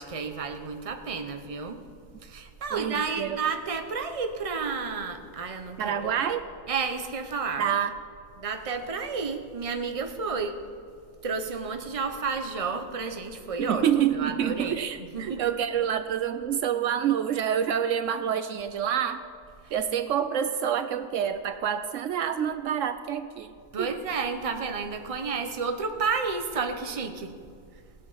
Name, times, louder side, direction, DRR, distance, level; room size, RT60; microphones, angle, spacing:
voice 1, 0.0-1.8 2.2-6.2 6.7-7.6 8.4-10.6 11.2-13.8 14.1-15.4 19.6-19.7 23.7-27.3 27.7-27.8, right 5 dB, 30° right, 6 dB, 0.9 m, -31 dB
voice 2, 2.7-3.4 5.8-6.5 7.6-7.9 13.6-19.2 19.7-23.9, right 9 dB, 70° right, 10 dB, 0.9 m, -27 dB
18.5 x 8.2 x 5.7 m, 2.4 s
omnidirectional pair, 1.4 m